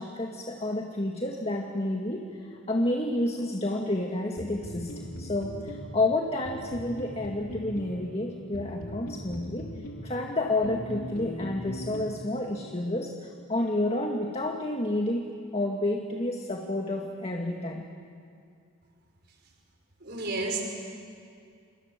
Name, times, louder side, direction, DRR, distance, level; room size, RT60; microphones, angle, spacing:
voice 1, 0.0-4.9 5.2-9.7 10.0-17.9, left 1 dB, 30° left, 1 dB, 1.9 m, -30 dB
sound 1, 4.4-12.8, equal, 85° left, 4.1 m, -40 dB
voice 2, 20.0-20.6, right 3 dB, 55° right, 1 dB, 5.5 m, -31 dB
28.0 x 28.0 x 7.5 m, 2.3 s
head